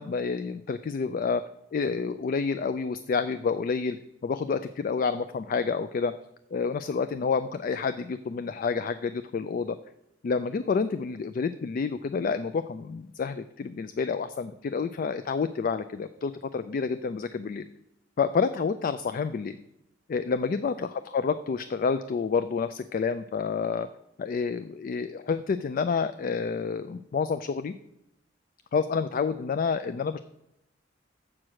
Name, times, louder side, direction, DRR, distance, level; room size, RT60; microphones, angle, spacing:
voice 1, 0.0-1.4 1.7-4.0 4.2-6.1 6.5-9.8 10.2-17.7 18.2-19.6 20.1-23.9 24.2-27.7 28.7-30.2, left 5 dB, 45° left, 11 dB, 0.3 m, -29 dB
7.4 x 4.7 x 6.2 m, 0.83 s
head